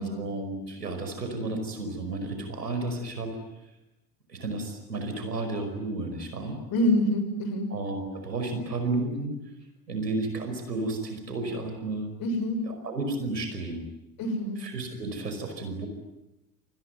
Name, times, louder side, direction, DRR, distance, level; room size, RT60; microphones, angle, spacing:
voice 1, 0.0-3.3 4.3-6.6 7.7-9.3 9.9-12.1 12.7-13.9 14.6-15.9, right 2 dB, 85° right, 6 dB, 5.4 m, -32 dB
voice 2, 6.7-7.7 12.2-12.6 14.2-14.7, left 1 dB, 45° left, 8 dB, 6.5 m, -26 dB
28.0 x 20.5 x 9.4 m, 0.93 s
figure-of-eight pair, 70°, 48 cm